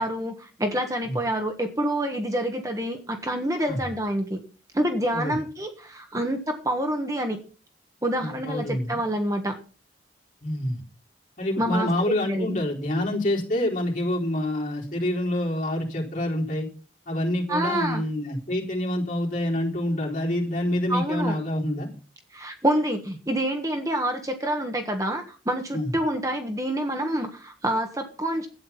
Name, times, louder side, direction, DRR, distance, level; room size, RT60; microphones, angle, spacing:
voice 1, 0.0-4.4 4.7-7.4 8.0-9.6 11.6-12.6 17.5-18.0 20.9-21.4 22.3-28.5, right 1 dB, 20° right, 4 dB, 1.3 m, -27 dB
voice 2, 8.2-9.0 10.4-10.8 11.4-16.7 17.1-21.9 25.7-25.9, left 1 dB, 45° left, -2 dB, 4.1 m, -27 dB
12.0 x 8.9 x 5.8 m, 0.37 s
head